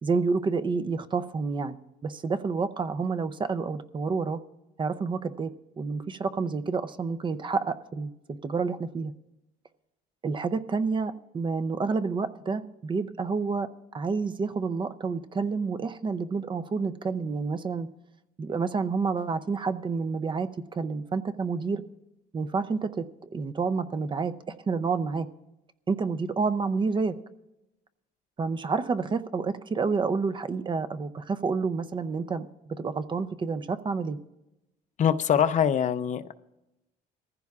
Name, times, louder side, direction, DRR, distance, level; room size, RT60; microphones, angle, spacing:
voice 1, 0.0-1.8 2.0-4.4 4.8-9.1 10.2-17.9 18.4-21.8 22.3-25.3 25.9-27.1 28.4-34.2, right 4 dB, 30° right, 12 dB, 0.6 m, -29 dB
voice 2, 35.0-36.4, left 8 dB, 45° left, 12 dB, 0.6 m, -24 dB
22.0 x 15.0 x 2.4 m, 0.95 s
cardioid pair, 110°, 17 cm